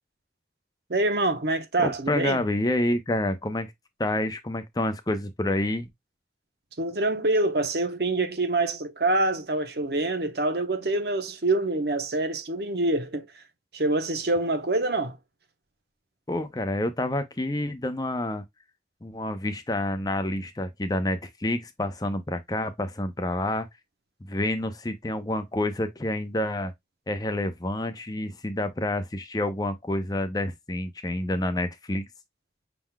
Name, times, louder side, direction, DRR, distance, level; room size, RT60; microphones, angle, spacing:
voice 1, 0.9-2.4 6.8-13.3 13.7-15.2, right 2 dB, 65° right, 0.9 m, -26 dB
voice 2, 1.8-3.7 4.0-5.9 16.3-18.4 19.0-23.7 24.3-26.7 27.1-32.0, left 1 dB, 20° left, 0.6 m, -28 dB
5.9 x 3.7 x 2.2 m
head